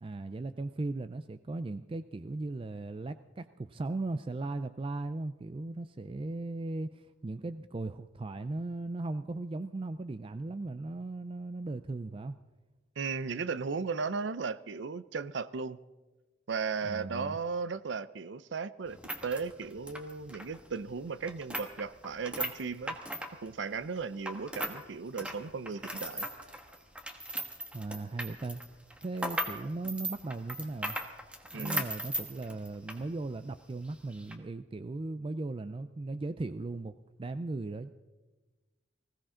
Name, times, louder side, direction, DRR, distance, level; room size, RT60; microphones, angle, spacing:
voice 1, 0.0-12.3 16.8-17.4 27.7-28.6 29.0-31.0 31.5-36.9 37.2-37.9, right 2 dB, 30° right, 11 dB, 0.4 m, -37 dB
voice 2, 13.0-15.8 16.5-19.0 19.2-23.0 23.4-26.3 31.5-31.8, right 5 dB, 75° right, 16 dB, 0.6 m, -36 dB
sound 1, 18.9-24.8 25.1-33.0 33.3-33.4 34.1-34.3, right 1 dB, 5° right, 1.3 m, -38 dB
20.0 x 16.0 x 3.8 m, 1.2 s
head